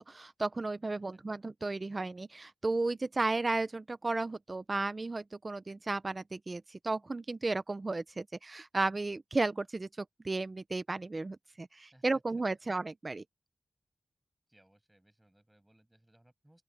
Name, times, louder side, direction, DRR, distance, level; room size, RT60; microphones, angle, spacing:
voice 1, 0.1-13.2, right 3 dB, 30° right, 0.9 m, -34 dB
voice 2, 14.5-16.6, right 1 dB, 10° right, 7.7 m, -65 dB
open air
wide cardioid pair, 120°, 0 cm